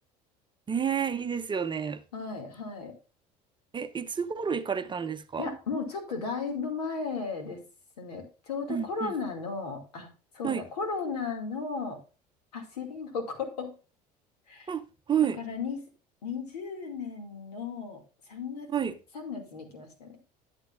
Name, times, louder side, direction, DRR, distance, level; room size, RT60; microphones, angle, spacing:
voice 1, 0.7-2.0 3.7-5.6 8.7-9.1 10.4-10.6 14.7-14.8 15.1-15.4 18.7-18.9, right 7 dB, 25° right, 0.8 m, -30 dB
voice 2, 2.1-3.0 5.4-7.6 8.0-10.1 10.3-12.0 12.5-13.7 14.5-14.7 15.4-15.9 16.2-18.0 18.3-20.2, left 4 dB, 70° left, 2.4 m, -35 dB
11.5 x 8.2 x 2.5 m
figure-of-eight pair, 65°, 21 cm